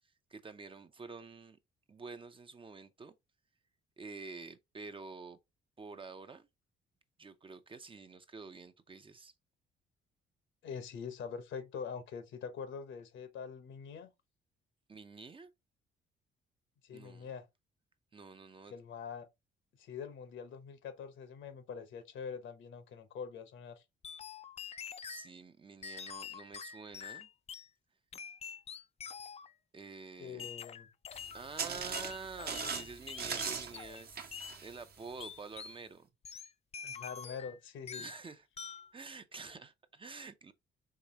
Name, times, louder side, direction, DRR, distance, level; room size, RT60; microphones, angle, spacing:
voice 1, 0.3-1.6 1.9-3.1 4.0-5.4 5.8-6.5 7.2-9.3 14.9-15.5 16.9-17.3 18.1-18.7 25.0-27.3 29.7-30.5 31.3-36.1 38.0-38.5 38.9-40.5, right 4 dB, 25° right, 0.6 m, -48 dB
voice 2, 10.6-14.1 16.8-17.5 18.7-19.3 19.8-23.8 30.2-30.9 36.8-38.1, left 6 dB, 75° left, 1.0 m, -44 dB
sound 1, 24.0-25.3 25.8-27.7 28.1-29.5 30.4-31.5 31.9-34.0 34.3-34.6 35.2-35.8 36.2-37.6 37.9-38.2 38.6-38.9, left 7 dB, 35° left, 0.3 m, -46 dB
sound 2, 31.1-35.5, right 6 dB, 50° right, 1.0 m, -41 dB
4.8 x 3.2 x 2.8 m
cardioid pair, 90°, 20 cm